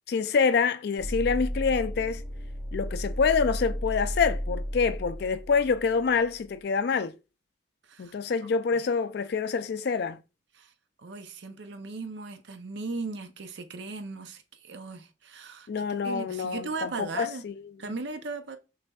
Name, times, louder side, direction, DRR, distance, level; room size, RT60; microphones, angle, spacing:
voice 1, 0.1-2.2 2.7-7.1 8.0-10.2 15.7-17.6, left 5 dB, 55° left, 0.3 m, -26 dB
sound 1, 1.0-6.4, equal, 20° left, 2.4 m, -34 dB
voice 2, 11.0-15.7 16.0-17.4 17.8-18.6, right 3 dB, 60° right, 0.5 m, -37 dB
6.0 x 3.3 x 2.3 m
head